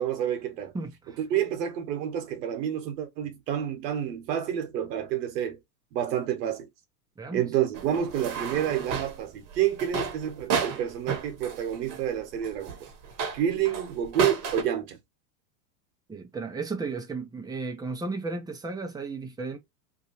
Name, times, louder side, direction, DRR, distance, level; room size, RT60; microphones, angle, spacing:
voice 1, 0.0-0.7 1.2-5.6 5.9-6.7 7.3-12.8 13.3-15.0, right 10 dB, 75° right, 1.1 m, -29 dB
voice 2, 0.7-1.2 7.2-7.5 16.1-19.6, right 3 dB, 10° right, 0.6 m, -34 dB
sound 1, 7.7-14.6, right 6 dB, 40° right, 1.1 m, -32 dB
2.7 x 2.3 x 2.9 m
hypercardioid pair, 105°, 49 cm